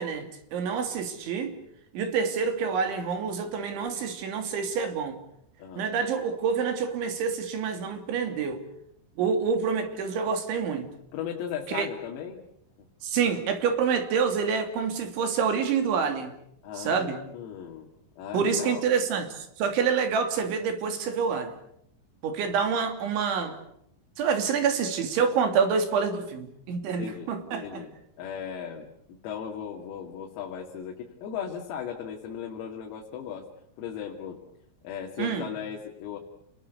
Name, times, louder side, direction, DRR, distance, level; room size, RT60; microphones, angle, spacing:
voice 1, 0.0-1.6 1.9-5.2 5.8-8.6 9.2-10.9 11.7-11.9 13.0-16.3 16.8-17.2 18.3-21.6 22.2-23.6 24.2-27.8 35.2-35.5, right 6 dB, 65° right, 7 dB, 5.1 m, -27 dB
voice 2, 11.1-12.4 16.6-17.9 18.2-18.8 26.9-27.3 27.6-27.9 28.2-33.5 33.8-34.4 34.9-36.2, left 8 dB, 90° left, 0 dB, 5.3 m, -37 dB
29.5 x 22.0 x 8.3 m, 0.73 s
omnidirectional pair, 6.0 m